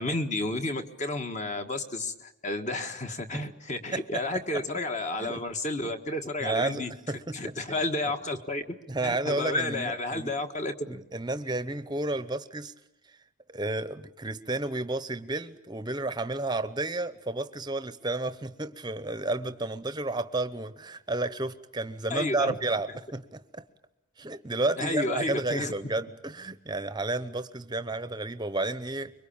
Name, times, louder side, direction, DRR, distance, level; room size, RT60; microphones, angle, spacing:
voice 1, 0.0-6.9 7.3-8.6 9.0-10.9 22.1-22.5 24.8-25.7, left 2 dB, 35° left, 1.6 m, -31 dB
voice 2, 3.9-4.6 5.2-5.4 6.4-8.1 8.9-10.3 10.9-12.7 13.5-23.6 24.2-29.1, right 2 dB, 20° right, 0.9 m, -32 dB
25.0 x 23.0 x 8.8 m
head